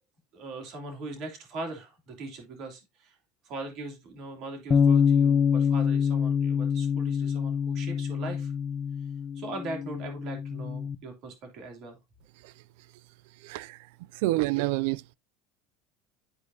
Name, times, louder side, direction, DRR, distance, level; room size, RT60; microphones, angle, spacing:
voice 1, 0.3-3.2 3.4-8.5 9.3-12.0, right 2 dB, 55° right, 2.8 m, -40 dB
Bass guitar, 4.7-11.0, left 7 dB, 30° left, 0.6 m, -25 dB
voice 2, 13.4-13.8 14.2-15.1, right 18 dB, 75° right, 0.3 m, -27 dB
12.5 x 4.8 x 2.7 m
supercardioid pair, 100°, 0 cm